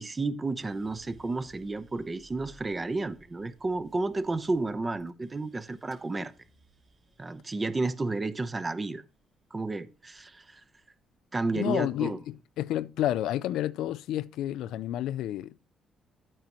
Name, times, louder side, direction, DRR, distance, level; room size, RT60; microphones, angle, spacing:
voice 1, 0.0-6.3 7.2-9.0 9.5-10.6 11.3-12.2, right 3 dB, 25° right, 0.9 m, -32 dB
sound 1, 0.6-10.8 11.2-12.0, right 2 dB, 45° right, 2.7 m, -60 dB
voice 2, 11.5-15.7, left 12 dB, 85° left, 0.4 m, -30 dB
12.0 x 8.9 x 3.0 m
cardioid pair, 90°, 0 cm